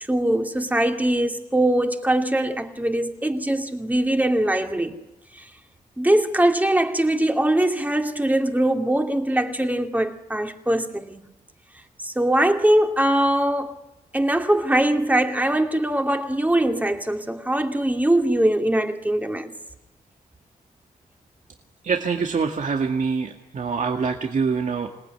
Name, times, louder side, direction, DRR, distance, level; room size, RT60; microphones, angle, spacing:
voice 1, 0.1-5.0 5.3-5.5 6.0-11.2 12.0-13.8 14.1-19.5, right 1 dB, 10° right, 2.6 m, -22 dB
voice 2, 21.8-24.9, right 5 dB, 60° right, 2.1 m, -25 dB
27.5 x 19.5 x 9.7 m
wide cardioid pair, 95°, 15 cm